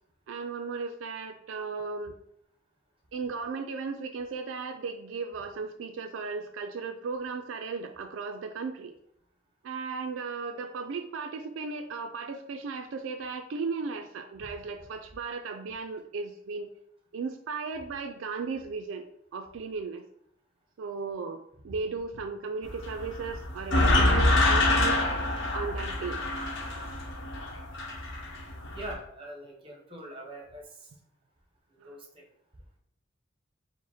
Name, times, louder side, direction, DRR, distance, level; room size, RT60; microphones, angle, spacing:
voice 1, 0.3-2.1 3.1-8.9 9.6-16.7 17.1-19.1 19.3-20.0 20.8-21.4 21.6-25.0 25.5-26.2 31.8-32.0, right 4 dB, 75° right, 7 dB, 0.3 m, -36 dB
sound 1, 22.6-28.9, left 2 dB, 65° left, 0.9 m, -26 dB
voice 2, 28.7-30.7 31.8-32.2, right 1 dB, 30° right, 1 dB, 0.8 m, -42 dB
4.8 x 2.1 x 4.1 m, 0.72 s
head